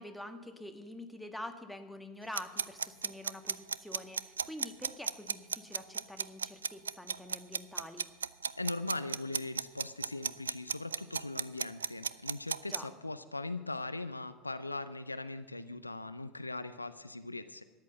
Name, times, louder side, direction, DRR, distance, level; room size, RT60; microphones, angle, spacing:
voice 1, 0.0-8.1 12.7-12.9, left 1 dB, ahead, 6 dB, 1.6 m, -46 dB
sound 1, 2.3-12.8, right 6 dB, 75° right, 0.3 m, -34 dB
voice 2, 8.5-17.6, left 2 dB, 85° left, 13 dB, 0.5 m, -40 dB
13.0 x 9.6 x 7.8 m, 1.3 s
figure-of-eight pair, 75°, 0 cm